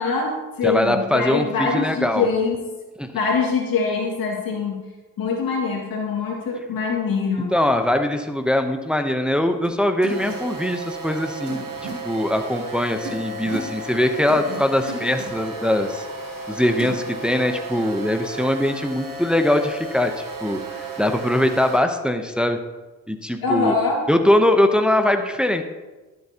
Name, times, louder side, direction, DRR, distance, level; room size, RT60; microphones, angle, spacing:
voice 1, 0.0-2.6 3.1-4.8 5.2-7.5 23.4-24.0, left 4 dB, 90° left, -1 dB, 2.1 m, -23 dB
voice 2, 0.6-2.3 3.0-3.1 7.5-16.0 16.5-22.6 23.1-23.7 24.1-25.6, left 1 dB, 5° right, 6 dB, 0.8 m, -21 dB
sound 1, 9.6-9.7 10.0-10.3 11.5-11.9 13.0-13.7 14.3-14.6 14.9-15.2 16.8-17.0, right 3 dB, 90° right, 2.9 m, -34 dB
sound 2, 10.1-21.8, right 2 dB, 70° right, 1.8 m, -34 dB
12.5 x 7.8 x 2.9 m, 1.2 s
cardioid pair, 65°, 34 cm